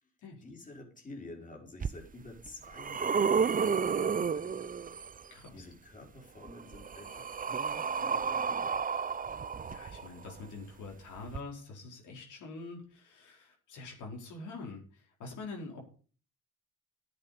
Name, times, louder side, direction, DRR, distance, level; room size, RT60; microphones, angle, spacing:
voice 1, 0.4-5.0 5.5-8.8, left 2 dB, 25° left, 1 dB, 4.7 m, -50 dB
sound 1, 1.8-1.9 2.5-5.2 6.4-10.3 11.3-11.4, right 6 dB, 30° right, 0.7 m, -31 dB
voice 2, 5.3-5.6 9.7-15.8, left 3 dB, 80° left, 0 dB, 4.7 m, -45 dB
11.0 x 8.1 x 6.7 m, 0.39 s
cardioid pair, 90°, 30 cm